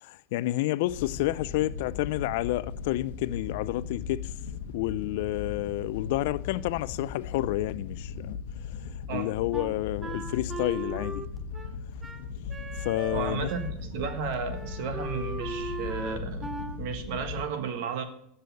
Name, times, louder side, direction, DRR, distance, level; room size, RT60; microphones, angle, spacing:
voice 1, 0.0-4.3 4.7-8.4 9.1-11.2 12.8-13.5, left 17 dB, 70° left, 0.4 m, -30 dB
Wind / Boat Water vehicle, 0.9-17.4, left 6 dB, 85° left, 1.0 m, -38 dB
Wind instrument woodwind instrument, 9.5-13.8 14.0-14.2 14.5-16.8, right 2 dB, 15° right, 0.7 m, -38 dB
voice 2, 13.1-16.5 16.8-18.0, right 6 dB, 65° right, 1.4 m, -33 dB
7.7 x 6.8 x 6.9 m
supercardioid pair, 130°, 0 cm